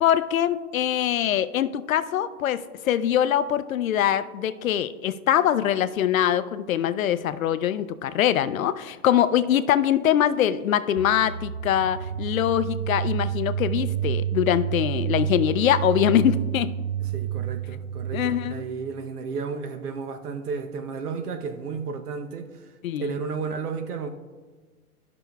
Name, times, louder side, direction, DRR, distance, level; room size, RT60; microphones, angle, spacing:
voice 1, 0.0-16.7 18.1-18.7 22.8-23.2, left 10 dB, 65° left, 13 dB, 0.5 m, -23 dB
sound 1, 11.0-18.7, right 10 dB, 55° right, 0.5 m, -29 dB
voice 2, 17.1-22.5 23.0-24.1, right 5 dB, 80° right, 7 dB, 0.9 m, -32 dB
14.5 x 5.9 x 2.3 m, 1.4 s
hypercardioid pair, 165°, 46 cm